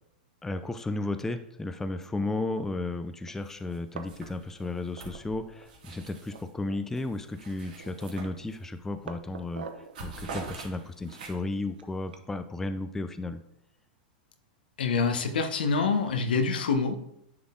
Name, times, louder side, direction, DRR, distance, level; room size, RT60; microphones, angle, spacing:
voice 1, 0.4-9.7 10.0-13.4, left 2 dB, 10° left, 9 dB, 0.4 m, -34 dB
sound 1, 2.3-2.6 3.3-3.4 3.6-4.3 4.5-5.6 5.9-6.0 6.3-7.0 7.4-8.2 8.7-9.9 10.4-12.3, right 6 dB, 85° right, 0.8 m, -45 dB
sound 2, 3.4-3.8 4.1-6.5 6.9-8.8 9.2-9.4 9.7-11.6, right 3 dB, 70° right, 2.1 m, -44 dB
voice 2, 14.8-16.9, left 4 dB, 85° left, 6 dB, 1.1 m, -26 dB
9.5 x 3.9 x 3.7 m, 0.77 s
hypercardioid pair, 120°, 5 cm